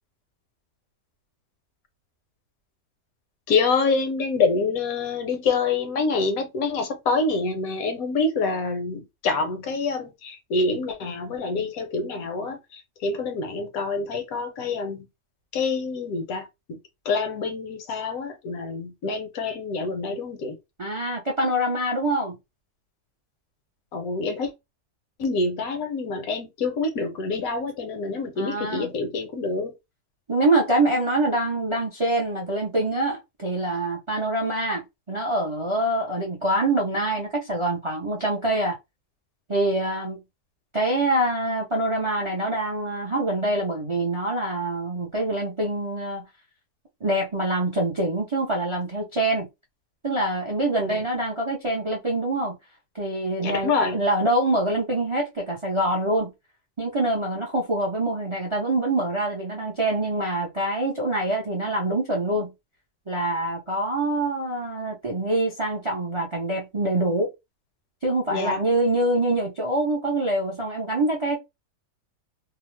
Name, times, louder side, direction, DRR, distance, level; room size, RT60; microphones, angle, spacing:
voice 1, 3.5-15.1 15.5-16.8 17.1-20.6 23.9-24.5 25.2-29.7 50.8-51.0 53.4-54.0 68.3-68.6, left 4 dB, 70° left, 1.0 m, -26 dB
voice 2, 20.8-22.4 28.4-28.9 30.3-34.8 35.1-38.8 39.5-40.2 40.7-46.2 47.0-49.5 50.0-52.6 52.9-56.3 56.8-62.5 63.1-67.3 68.0-71.4, right 1 dB, 40° right, 0.4 m, -25 dB
2.7 x 2.0 x 3.2 m
omnidirectional pair, 1.7 m